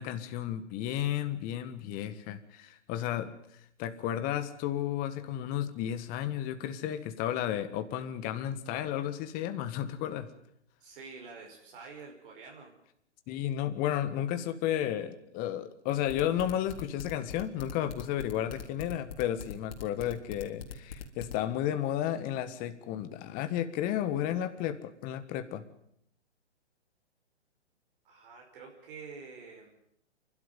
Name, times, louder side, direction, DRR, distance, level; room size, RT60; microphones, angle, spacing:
voice 1, 0.0-10.3 13.3-25.6, left 11 dB, 25° left, 10 dB, 1.6 m, -33 dB
voice 2, 10.8-12.7 28.0-29.8, right 4 dB, 50° right, 0 dB, 5.5 m, -48 dB
sound 1, 16.1-21.3, left 8 dB, 60° left, 3.6 m, -41 dB
28.5 x 12.5 x 9.3 m, 0.72 s
hypercardioid pair, 130°, 34 cm